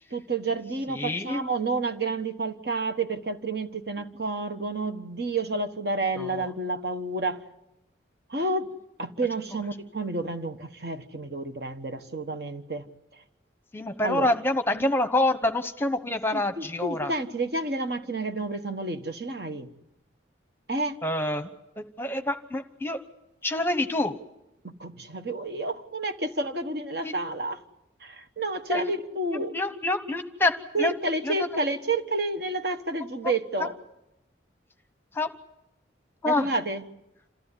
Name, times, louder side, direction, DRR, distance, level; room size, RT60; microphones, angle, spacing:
voice 1, 0.1-7.4 8.3-8.7 9.0-12.9 13.1-13.2 14.0-14.3 16.3-19.7 20.7-21.0 24.6-27.6 28.0-29.6 30.7-33.8 36.2-36.8, right 2 dB, 55° right, 7 dB, 1.4 m, -30 dB
voice 2, 1.0-1.4 13.7-17.1 21.0-21.5 21.8-23.0 23.4-24.1 27.0-27.1 28.7-28.9 29.5-30.5 30.8-30.9 31.2-31.3 35.1-35.3 36.2-36.5, left 1 dB, 10° left, 9 dB, 1.0 m, -26 dB
27.5 x 15.0 x 9.9 m, 0.90 s
head